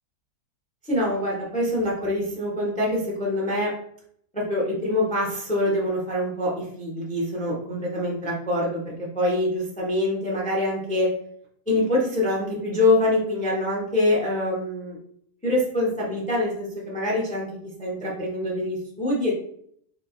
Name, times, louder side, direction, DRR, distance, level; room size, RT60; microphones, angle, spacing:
voice 1, 0.8-3.7 4.3-11.1 11.7-15.0 15.4-19.3, left 1 dB, 10° left, -4 dB, 0.3 m, -25 dB
3.9 x 2.7 x 2.4 m, 0.67 s
omnidirectional pair, 1.7 m